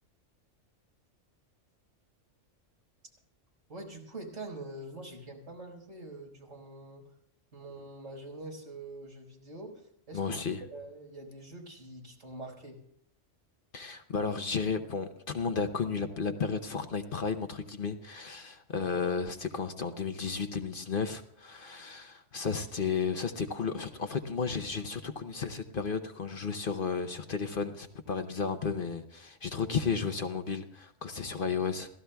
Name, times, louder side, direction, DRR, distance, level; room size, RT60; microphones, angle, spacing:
voice 1, 3.7-7.0 7.5-10.3 10.7-12.8 31.4-31.5, right 2 dB, 80° right, -1 dB, 5.2 m, -45 dB
voice 2, 10.1-10.6 13.7-31.9, left 5 dB, 50° left, 8 dB, 0.9 m, -33 dB
30.0 x 16.0 x 2.3 m, 0.68 s
omnidirectional pair, 1.3 m